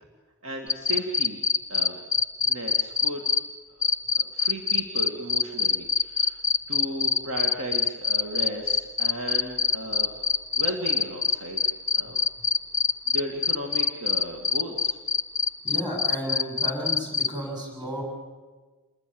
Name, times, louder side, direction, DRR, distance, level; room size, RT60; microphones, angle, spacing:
voice 1, 0.4-1.4 1.7-2.0 2.4-3.3 4.1-6.4 6.7-10.1 10.5-11.6 11.9-12.2 13.1-15.0, right 1 dB, 65° right, 2 dB, 2.2 m, -35 dB
sound 1, 0.7-3.4 3.8-17.3, left 5 dB, 15° left, 1.0 m, -23 dB
voice 2, 15.6-18.0, equal, 20° right, 0 dB, 7.7 m, -32 dB
27.5 x 20.5 x 7.8 m, 1.3 s
head